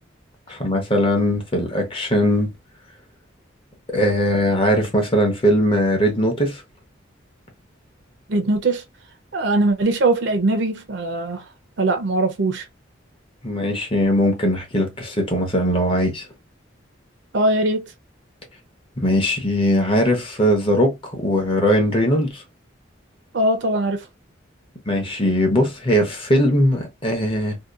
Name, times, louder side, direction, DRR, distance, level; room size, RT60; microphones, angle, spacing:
voice 1, 0.5-2.5 3.9-6.6 13.4-16.3 19.0-22.4 24.9-27.6, equal, 30° left, 0.8 m, -20 dB
voice 2, 8.3-8.8 9.3-11.4 11.8-12.7 17.3-17.9 23.3-24.1, right 2 dB, 65° right, 0.6 m, -21 dB
2.8 x 2.2 x 2.3 m
head